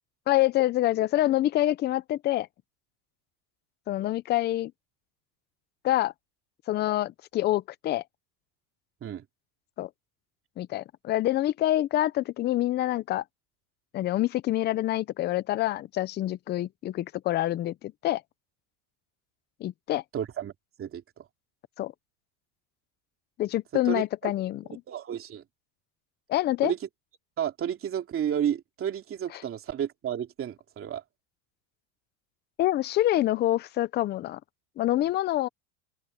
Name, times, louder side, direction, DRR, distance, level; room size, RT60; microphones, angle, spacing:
voice 1, 0.3-2.5 3.9-4.7 5.8-6.1 6.7-8.0 9.8-9.9 10.6-13.2 13.9-18.2 19.6-20.0 21.8-21.9 23.4-24.8 26.3-26.7 29.3-29.4 32.6-34.4 34.8-35.5, left 14 dB, 25° left, 0.4 m, -26 dB
voice 2, 20.1-20.5 20.8-21.3 23.8-24.0 24.9-25.4 26.6-26.8 27.4-31.0, right 9 dB, 30° right, 2.9 m, -31 dB
open air
supercardioid pair, 140°, 44 cm